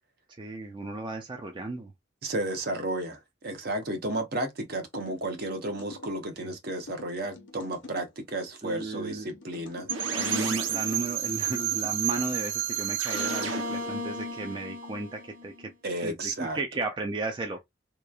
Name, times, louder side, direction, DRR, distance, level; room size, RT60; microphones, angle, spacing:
voice 1, 0.4-1.9 6.4-6.5 8.6-9.3 10.1-15.5 16.0-17.6, right 2 dB, 25° right, 0.4 m, -34 dB
voice 2, 2.2-9.9 15.8-16.6, right 1 dB, 55° right, 0.8 m, -33 dB
sound 1, 4.9-6.2 6.9-8.1 8.8-10.0 10.7-12.0, left 3 dB, 65° left, 0.8 m, -46 dB
sound 2, 9.9-15.7, right 7 dB, 85° right, 0.8 m, -31 dB
2.9 x 2.4 x 2.3 m
head